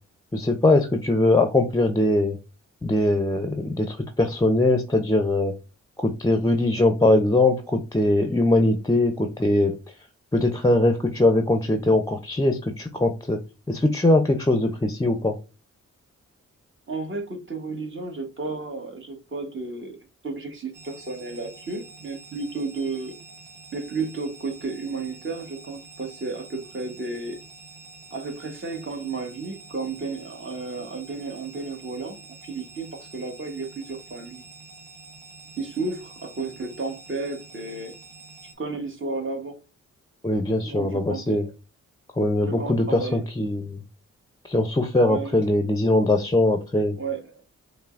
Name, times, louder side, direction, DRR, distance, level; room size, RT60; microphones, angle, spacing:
voice 1, 0.3-2.4 2.8-5.5 6.0-9.7 10.3-13.4 13.7-15.4 40.2-41.4 42.2-43.8 44.4-47.0, left 2 dB, 10° left, 0.5 m, -21 dB
voice 2, 16.9-20.0 20.2-23.1 23.7-27.4 28.1-34.4 35.6-38.0 38.6-39.6 40.6-41.4 42.4-43.2 45.1-45.4 46.9-47.2, right 3 dB, 40° right, 1.1 m, -33 dB
sound 1, 20.7-38.5, right 3 dB, 75° right, 1.0 m, -47 dB
5.4 x 2.1 x 2.4 m
cardioid pair, 45°, 31 cm